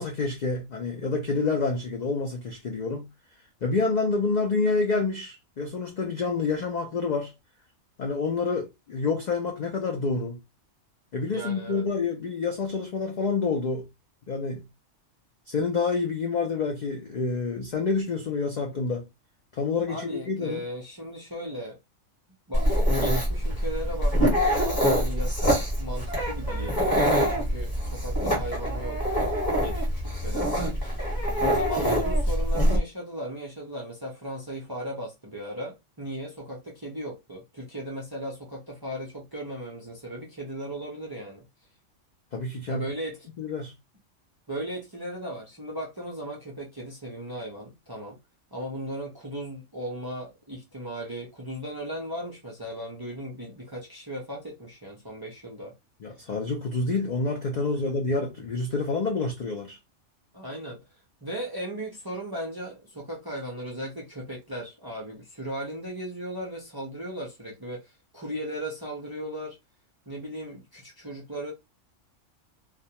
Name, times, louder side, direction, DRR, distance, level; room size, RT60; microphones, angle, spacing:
voice 1, 0.0-3.1 3.6-7.3 8.0-10.4 11.1-13.9 14.3-14.6 15.5-19.1 19.6-20.6 42.3-42.9 43.4-43.7 56.0-59.8, left 4 dB, 80° left, 0.4 m, -28 dB
voice 2, 11.3-11.8 19.9-21.8 22.5-29.0 29.6-30.7 31.0-31.2 31.5-41.5 42.7-43.3 44.5-48.2 48.5-55.7 57.8-57.9 60.3-60.8 61.2-69.6 70.1-71.5, right 1 dB, 35° right, 0.3 m, -37 dB
Dog, 22.5-32.8, equal, 20° left, 0.9 m, -25 dB
2.3 x 2.1 x 2.8 m
omnidirectional pair, 1.3 m